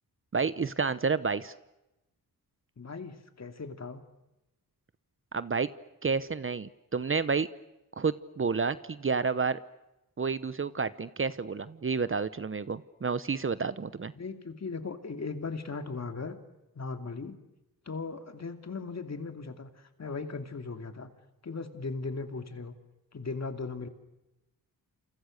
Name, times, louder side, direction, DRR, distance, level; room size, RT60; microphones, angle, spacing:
voice 1, 0.3-1.5 5.3-5.7 6.0-7.5 8.0-9.6 10.2-14.1, right 5 dB, 35° right, 15 dB, 0.9 m, -30 dB
voice 2, 2.8-4.0 14.2-16.4 16.7-17.4 17.9-19.7 20.0-21.1 21.4-22.7 23.1-23.9, left 4 dB, 45° left, 7 dB, 2.7 m, -38 dB
29.5 x 28.0 x 6.6 m, 0.94 s
wide cardioid pair, 120°, 37 cm